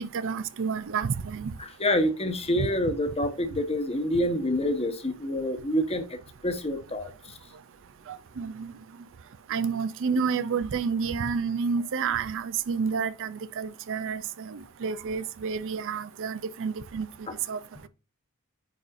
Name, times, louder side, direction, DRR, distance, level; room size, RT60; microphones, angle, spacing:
voice 1, 0.0-1.5 2.6-2.7 8.1-8.7 9.5-17.1 17.5-17.6, right 5 dB, 60° right, 0.5 m, -30 dB
voice 2, 1.6-6.0 6.4-7.1 17.3-17.4, left 1 dB, 25° left, 1.0 m, -27 dB
9.2 x 4.1 x 2.5 m
head